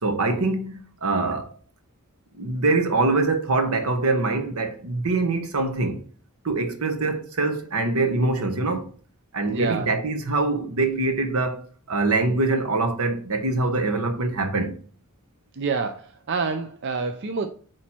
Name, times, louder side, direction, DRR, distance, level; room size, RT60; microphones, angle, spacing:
voice 1, 0.0-1.5 2.4-6.0 6.4-8.9 9.3-14.8, right 3 dB, 80° right, 1.0 m, -24 dB
voice 2, 9.5-9.9 15.5-17.5, right 4 dB, 55° right, 0.5 m, -27 dB
8.5 x 3.2 x 4.4 m
head